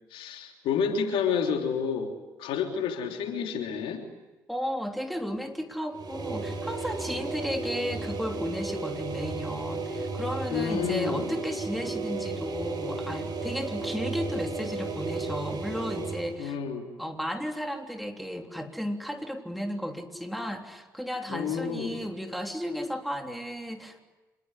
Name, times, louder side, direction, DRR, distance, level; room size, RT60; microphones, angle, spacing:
voice 1, 0.1-2.1 2.4-4.0 10.5-11.3 16.4-16.8 21.3-22.0, left 6 dB, 65° left, 4 dB, 3.4 m, -29 dB
voice 2, 4.5-16.6 17.0-24.0, equal, ahead, 4 dB, 3.5 m, -34 dB
sound 1, 5.9-16.3, right 3 dB, 45° right, 6.9 m, -34 dB
26.5 x 21.5 x 9.8 m, 1.1 s
figure-of-eight pair, 50°, 10 cm